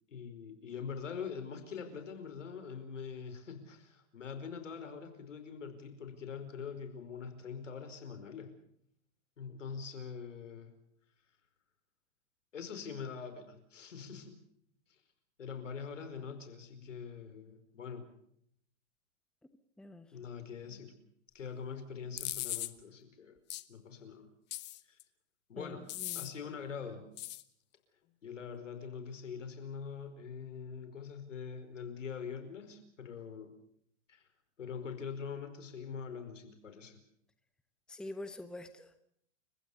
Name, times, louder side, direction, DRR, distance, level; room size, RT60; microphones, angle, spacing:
voice 1, 0.1-8.5 9.4-10.7 12.5-14.4 15.4-18.1 20.1-20.9 21.3-23.4 23.7-24.3 24.9-25.0 25.5-25.9 26.1-27.1 28.2-33.5 34.1-34.3 34.6-37.0, left 6 dB, 90° left, 9 dB, 5.1 m, -44 dB
sound 1, 22.2-22.7 23.5-23.6 24.5-25.0 25.9-26.3 27.2-27.4, left 16 dB, 30° left, 1.1 m, -38 dB
voice 2, 25.6-26.3 37.9-39.0, left 1 dB, ahead, 9 dB, 1.1 m, -46 dB
30.0 x 15.5 x 7.0 m, 0.69 s
hypercardioid pair, 125°, 36 cm